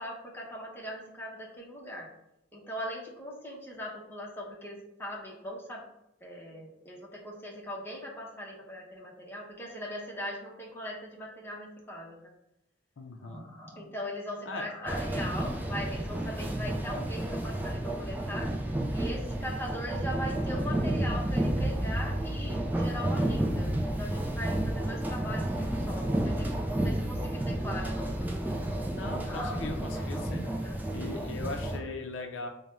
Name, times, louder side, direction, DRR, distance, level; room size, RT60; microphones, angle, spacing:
voice 1, 0.0-2.1 2.5-5.8 6.2-12.2 13.2-18.5 18.9-28.8 29.2-30.8, equal, 10° left, -3 dB, 0.8 m, -40 dB
voice 2, 13.0-13.4 14.5-14.7 28.9-30.5 30.9-32.5, left 3 dB, 75° left, 4 dB, 0.5 m, -39 dB
sound 1, 14.9-31.8, right 1 dB, 10° right, 0.4 m, -31 dB
3.5 x 2.1 x 4.2 m, 0.82 s
head